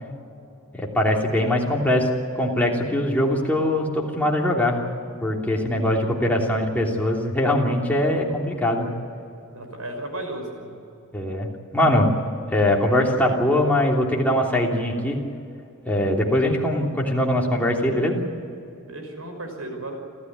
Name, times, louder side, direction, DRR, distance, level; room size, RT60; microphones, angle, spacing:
voice 1, 0.7-2.1 2.3-4.8 5.2-8.9 11.1-12.1 12.5-15.2 15.8-18.2, left 1 dB, 5° left, -2 dB, 3.0 m, -22 dB
voice 2, 9.5-10.8 18.9-20.0, right 1 dB, 85° right, 4 dB, 5.7 m, -34 dB
28.5 x 14.0 x 9.5 m, 2.7 s
head